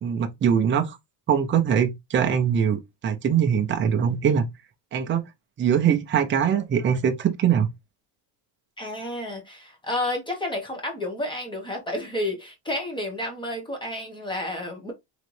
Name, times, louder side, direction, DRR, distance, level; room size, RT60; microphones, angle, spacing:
voice 1, 0.0-1.0 1.3-4.5 4.9-5.2 5.6-7.7, right 8 dB, 25° right, 0.6 m, -22 dB
voice 2, 8.8-14.9, left 1 dB, 10° left, 1.2 m, -31 dB
4.0 x 3.2 x 3.2 m
cardioid pair, 160°, 48 cm